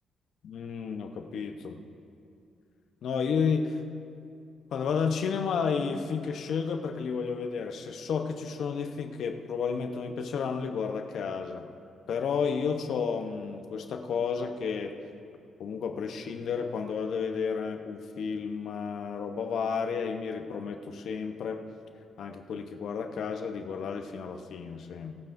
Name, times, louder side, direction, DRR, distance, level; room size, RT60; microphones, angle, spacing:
voice 1, 0.4-1.8 3.0-3.8 4.7-11.7 12.1-14.9 15.6-21.6 22.2-25.1, left 6 dB, 70° left, 6 dB, 0.9 m, -32 dB
24.5 x 9.0 x 2.6 m, 2.5 s
supercardioid pair, 60°, 0 cm